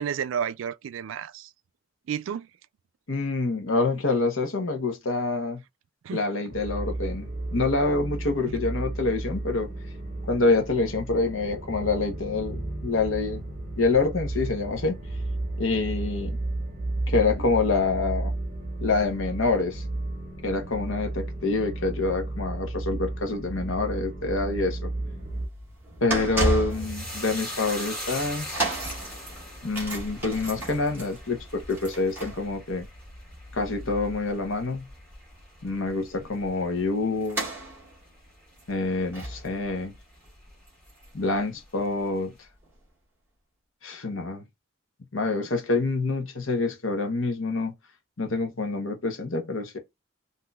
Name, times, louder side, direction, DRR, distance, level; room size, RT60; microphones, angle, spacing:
voice 1, 0.0-1.5 2.1-2.5 6.0-6.2 8.5-8.6, right 8 dB, 75° right, 0.3 m, -31 dB
voice 2, 3.1-5.6 6.1-9.7 10.3-13.4 13.8-15.0 15.6-16.3 17.1-18.3 18.8-19.8 20.4-24.9 26.0-28.6 29.6-32.9 33.5-34.9 35.6-37.4 38.7-39.9 41.1-42.3 43.8-44.4 45.1-47.7 48.2-49.8, left 3 dB, 80° left, 0.9 m, -26 dB
sound 1, 6.5-25.5, right 2 dB, 45° right, 1.1 m, -33 dB
sound 2, 25.0-41.4 41.6-41.9 42.7-42.8, right 1 dB, 10° right, 1.6 m, -35 dB
sound 3, 26.7-35.3 35.6-36.3 36.6-36.8, equal, 5° left, 2.1 m, -41 dB
3.9 x 2.7 x 2.3 m
head